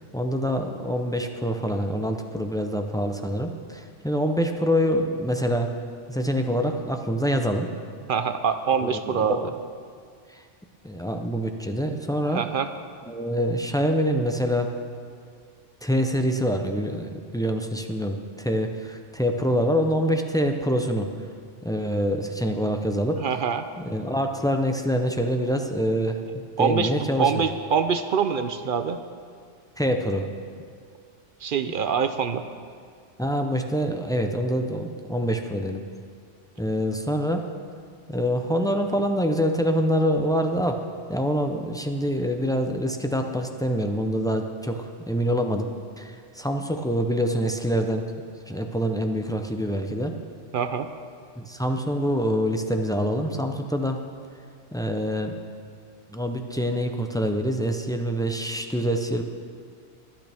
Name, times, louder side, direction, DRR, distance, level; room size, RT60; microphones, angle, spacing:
voice 1, 0.0-5.7 6.1-7.7 8.8-9.5 10.3-10.4 10.8-12.4 13.1-14.7 15.8-21.1 21.6-23.2 23.8-27.4 29.8-30.3 33.2-35.8 36.6-37.5 38.1-40.8 41.1-45.7 46.0-48.0 48.5-50.1 51.4-54.0 54.7-55.4 56.1-59.2, equal, 5° left, 4 dB, 0.3 m, -25 dB
voice 2, 8.1-9.5 12.3-12.7 23.2-23.6 26.6-26.9 27.2-29.0 31.4-32.4 50.5-50.9, right 6 dB, 55° right, 9 dB, 0.6 m, -24 dB
23.0 x 8.8 x 3.5 m, 2.1 s
omnidirectional pair, 1.3 m